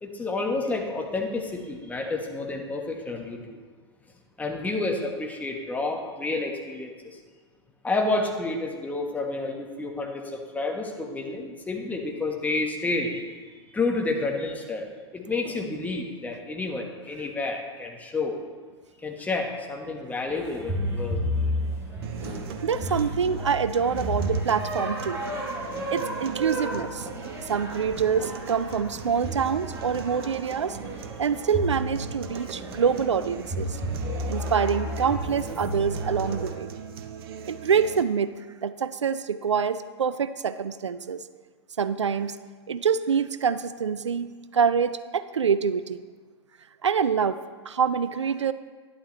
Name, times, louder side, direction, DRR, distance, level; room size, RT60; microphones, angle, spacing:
voice 1, 0.0-3.6 4.4-7.2 7.8-13.2 13.7-18.4 19.0-21.2, left 3 dB, 10° left, 1 dB, 1.4 m, -30 dB
sound 1, 20.3-36.5, equal, 15° right, 3.8 m, -32 dB
sound 2, 22.0-38.0, right 6 dB, 55° right, 0.9 m, -41 dB
voice 2, 22.6-25.2 25.9-27.1 27.5-30.8 31.2-33.8 34.3-36.7 37.5-38.3 38.6-41.2 41.8-42.4 42.7-46.0 46.8-47.4 47.7-48.5, right 6 dB, 80° right, 14 dB, 0.4 m, -26 dB
11.5 x 11.0 x 3.2 m, 1.5 s
figure-of-eight pair, 100°, 15 cm